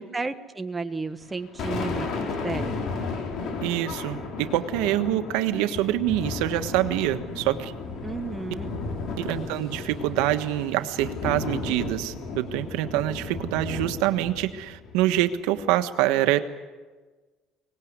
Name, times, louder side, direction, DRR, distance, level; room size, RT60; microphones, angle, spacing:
voice 1, 0.0-2.7 8.0-8.8, right 3 dB, 15° right, 9 dB, 1.2 m, -33 dB
Thunder, 1.2-15.8, left 3 dB, 50° left, 4.2 m, -34 dB
voice 2, 3.6-7.7 9.2-16.4, right 14 dB, 90° right, 9 dB, 1.4 m, -25 dB
23.5 x 19.0 x 9.7 m, 1.4 s
cardioid pair, 140°, 0 cm